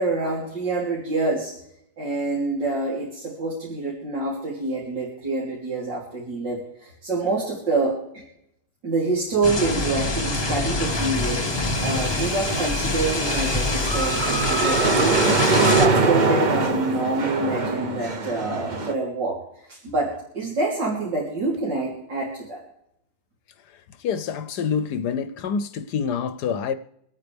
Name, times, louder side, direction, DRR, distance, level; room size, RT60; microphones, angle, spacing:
voice 1, 0.0-1.5 2.0-8.2 8.8-11.4 11.8-15.2 15.6-19.4 19.7-22.6, right 3 dB, 80° right, 3.7 m, -26 dB
sound 1, 9.4-15.9, left 3 dB, 25° left, 0.6 m, -26 dB
sound 2, 9.7-19.0, right 3 dB, 35° right, 0.7 m, -24 dB
voice 2, 24.0-26.7, left 6 dB, 70° left, 1.2 m, -26 dB
26.0 x 9.0 x 3.4 m
omnidirectional pair, 1.9 m